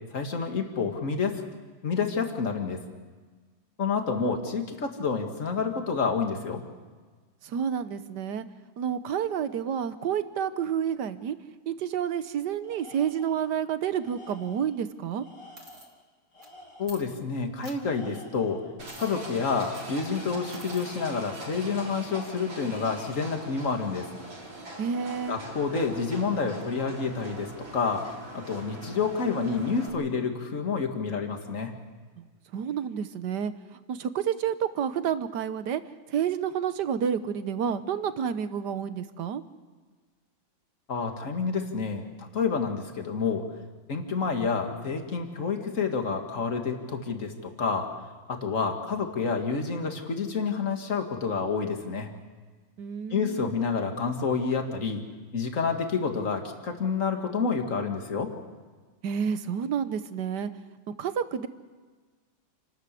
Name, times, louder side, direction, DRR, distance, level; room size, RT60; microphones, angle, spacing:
voice 1, 0.1-1.4 1.8-2.8 3.8-6.6 16.8-18.6 19.0-24.1 25.3-28.0 28.3-31.7 40.9-43.4 43.9-47.9 48.3-52.1 53.1-55.0 55.3-58.3, left 5 dB, 40° left, 4 dB, 2.4 m, -29 dB
voice 2, 7.4-8.5 8.8-11.4 11.7-15.2 24.8-25.4 32.2-32.3 32.5-33.5 33.9-35.8 36.1-39.4 52.8-53.5 59.0-60.5 60.9-61.5, right 8 dB, 65° right, 12 dB, 1.5 m, -29 dB
Tools, 12.6-13.5 14.0-14.8 15.2-17.1 17.8-18.7, left 2 dB, 60° left, 5.3 m, -50 dB
sound 1, 15.6-15.9 16.4-16.5 16.8-17.0 17.6-17.8 18.8-19.1 19.6-19.9 20.5-20.9, right 2 dB, 40° right, 2.9 m, -48 dB
Livestock farm animals working animals, 18.8-29.9, right 1 dB, 85° right, 5.2 m, -42 dB
28.5 x 13.0 x 8.4 m, 1.4 s
omnidirectional pair, 2.1 m